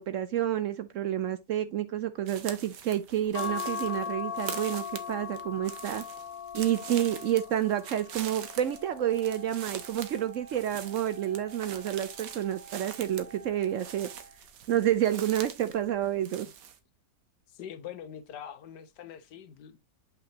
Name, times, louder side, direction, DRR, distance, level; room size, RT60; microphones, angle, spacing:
voice 1, 0.0-6.0 6.5-14.1 14.7-16.5, right 11 dB, 65° right, 0.8 m, -29 dB
sound 1, 2.3-15.8 16.0-16.8, right 8 dB, 85° right, 1.6 m, -44 dB
sound 2, 3.3-10.0 10.6-12.0 13.2-13.7 14.0-14.1, left 7 dB, 65° left, 1.3 m, -40 dB
Wind instrument woodwind instrument, 8.8-14.4, right 6 dB, 15° right, 2.6 m, -51 dB
voice 2, 17.5-19.8, left 9 dB, 90° left, 1.5 m, -43 dB
8.0 x 5.7 x 2.8 m
omnidirectional pair, 1.8 m